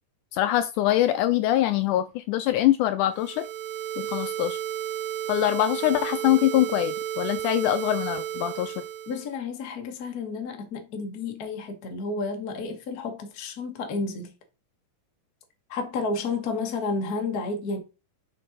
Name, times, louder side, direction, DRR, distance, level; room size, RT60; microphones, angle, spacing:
voice 1, 0.3-3.4 4.0-4.6 5.3-8.7, left 13 dB, 80° left, 1.9 m, -23 dB
sound 1, 3.1-9.3, right 11 dB, 85° right, 2.5 m, -32 dB
voice 2, 9.1-14.3 15.7-17.8, left 3 dB, 55° left, 1.0 m, -31 dB
6.4 x 5.4 x 3.9 m
omnidirectional pair, 3.9 m